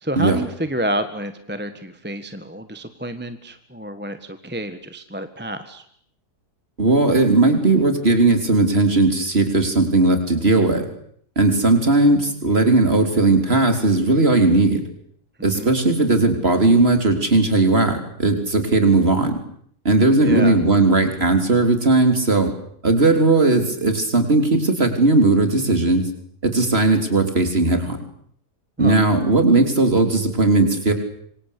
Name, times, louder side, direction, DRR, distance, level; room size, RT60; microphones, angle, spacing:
voice 1, 0.0-5.8 15.4-15.8 20.2-20.6 28.8-28.9, right 1 dB, 5° right, 9 dB, 1.4 m, -29 dB
voice 2, 6.8-10.9 11.4-14.8 15.4-19.4 19.8-22.5 22.8-26.1 26.4-28.0 28.8-30.9, right 2 dB, 35° right, 6 dB, 4.0 m, -17 dB
26.5 x 25.0 x 8.4 m, 0.65 s
omnidirectional pair, 1.7 m